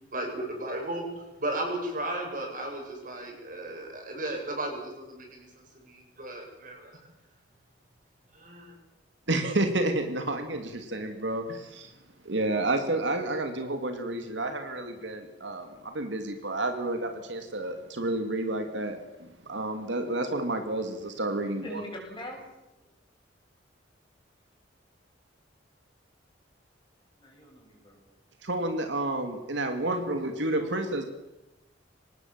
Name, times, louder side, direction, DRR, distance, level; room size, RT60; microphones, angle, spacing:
voice 1, 0.1-6.9 8.3-8.7, right 1 dB, 45° right, 1 dB, 7.3 m, -35 dB
voice 2, 9.3-11.9 12.2-21.8 28.4-31.0, right 2 dB, 75° right, 6 dB, 2.6 m, -30 dB
voice 3, 21.6-22.4 22.7-22.9 27.2-28.0 30.5-30.9, equal, 25° left, 0 dB, 6.9 m, -42 dB
24.5 x 19.0 x 7.6 m, 0.99 s
head